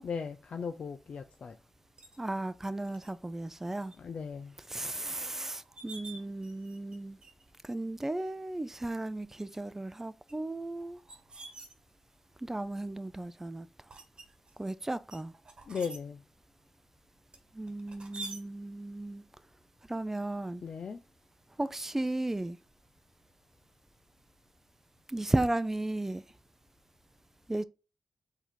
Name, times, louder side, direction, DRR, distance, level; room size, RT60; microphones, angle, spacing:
voice 1, 0.0-1.6 4.0-4.5 15.6-16.2 20.6-21.0, left 6 dB, 65° left, 0.4 m, -37 dB
sound 1, 2.0-2.2 3.0-3.1 3.6-3.9 4.4-4.5 5.3-5.4 5.6-7.0 7.2-7.5 8.2-8.3 9.2-9.6 10.3-12.2 12.9-13.2 13.9-14.6 15.1-16.0 17.3-18.4, right 2 dB, 50° right, 1.2 m, -47 dB
voice 2, 2.2-3.9 4.7-7.2 7.6-11.0 12.4-13.7 14.6-15.3 17.5-19.2 19.9-20.6 21.6-22.6 25.1-26.2 27.5-27.6, right 2 dB, 15° right, 0.4 m, -35 dB
3.9 x 2.7 x 4.5 m
cardioid pair, 45°, 2 cm